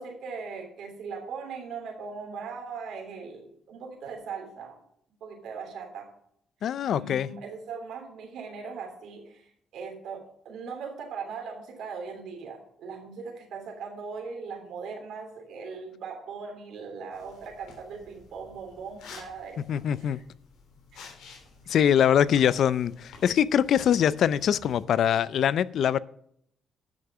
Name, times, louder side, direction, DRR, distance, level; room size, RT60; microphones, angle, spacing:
voice 1, 0.0-4.7 5.2-6.1 6.8-19.6 20.0-20.2 20.9-21.0, right 5 dB, 75° right, 3.2 m, -39 dB
voice 2, 6.6-7.3 19.7-20.2 21.0-21.1 21.7-26.0, left 9 dB, 70° left, 0.5 m, -23 dB
sound 1, 17.1-24.8, left 4 dB, 85° left, 3.0 m, -52 dB
10.5 x 6.7 x 6.0 m
cardioid pair, 90°, 0 cm